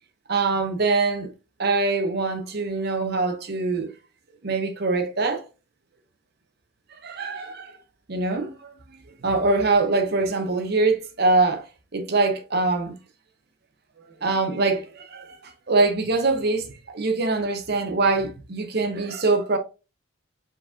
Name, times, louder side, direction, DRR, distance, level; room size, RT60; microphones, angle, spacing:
voice 1, 0.3-1.3 1.6-3.9 4.4-5.4 6.9-7.8 8.1-8.7 9.2-11.7 11.9-12.9 14.2-19.6, right 3 dB, 50° right, 0.8 m, -23 dB
4.8 x 4.0 x 2.5 m
head